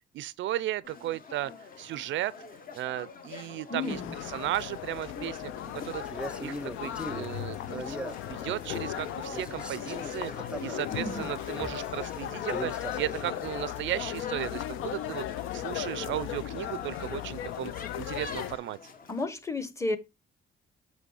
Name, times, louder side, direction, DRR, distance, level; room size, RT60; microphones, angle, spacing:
voice 1, 0.1-1.5 1.8-2.3 2.7-4.0 4.3-5.5 5.8-6.1 6.4-8.0 8.3-18.8, right 14 dB, 75° right, 0.4 m, -35 dB
sound 1, 0.8-19.2, left 4 dB, 45° left, 1.1 m, -46 dB
voice 2, 3.7-4.2 10.9-11.3 19.1-20.0, left 2 dB, 15° left, 0.9 m, -33 dB
sound 2, 3.9-18.6, left 12 dB, 85° left, 0.5 m, -37 dB
Male speech man speaking, 6.0-9.0 9.3-13.4, equal, 5° right, 0.6 m, -41 dB
7.5 x 3.1 x 4.8 m
cardioid pair, 90°, 20 cm